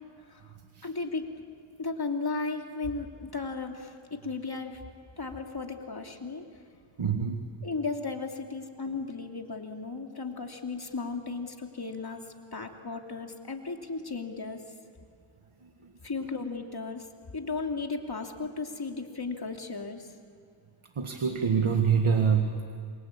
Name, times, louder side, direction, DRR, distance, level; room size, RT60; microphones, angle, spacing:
voice 1, 0.8-1.3 1.8-4.8 5.2-6.4 7.6-12.2 12.5-14.6 16.0-17.1 17.3-20.1, left 4 dB, 50° left, 3 dB, 2.9 m, -35 dB
voice 2, 7.0-7.4 21.0-22.6, right 6 dB, 75° right, 4 dB, 1.9 m, -25 dB
28.0 x 23.5 x 8.6 m, 2.4 s
wide cardioid pair, 55°, 49 cm